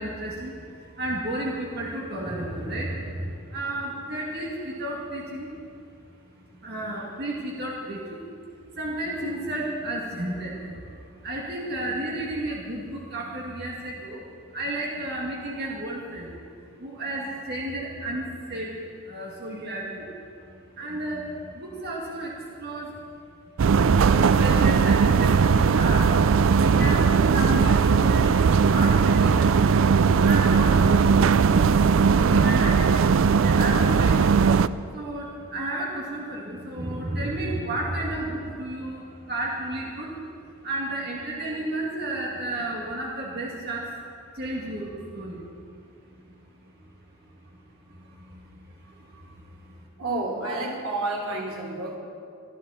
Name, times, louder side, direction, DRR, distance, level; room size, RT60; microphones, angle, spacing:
voice 1, 0.0-8.2 8.7-16.5 16.8-20.1 20.5-23.0 23.9-29.7 30.1-43.9 44.3-45.8 46.0-46.9 47.2-49.9, right 1 dB, 45° right, -4 dB, 2.2 m, -33 dB
sound 1, 23.6-34.7, right 5 dB, 65° right, 0.4 m, -19 dB
voice 2, 50.0-51.9, right 2 dB, 85° right, 0 dB, 3.1 m, -30 dB
23.5 x 13.0 x 4.2 m, 2.4 s
head